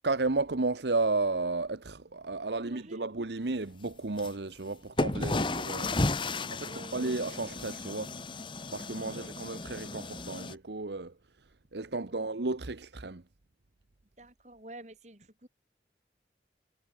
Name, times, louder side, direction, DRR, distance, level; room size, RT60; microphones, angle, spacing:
voice 1, 0.0-6.0 6.5-8.1 8.7-11.1 11.7-13.2, right 3 dB, 75° right, 1.1 m, -33 dB
voice 2, 2.6-3.1 5.9-7.0 9.1-9.2 12.1-12.2 14.2-15.5, right 1 dB, 40° right, 4.5 m, -50 dB
sound 1, 4.2-4.3 5.0-10.5, left 2 dB, 30° left, 0.8 m, -34 dB
head